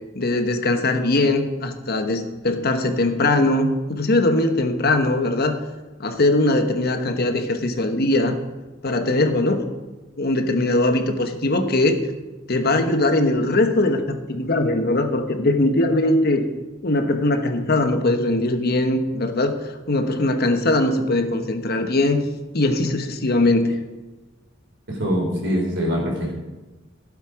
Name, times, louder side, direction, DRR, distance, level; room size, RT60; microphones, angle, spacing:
voice 1, 0.1-5.6 6.0-8.4 8.8-9.7 10.2-12.0 12.5-16.5 16.8-19.6 19.9-22.2 22.5-23.8, left 2 dB, 55° left, 6 dB, 1.2 m, -20 dB
voice 2, 24.9-26.3, equal, 65° right, 0 dB, 3.8 m, -23 dB
15.5 x 7.3 x 5.0 m, 1.2 s
head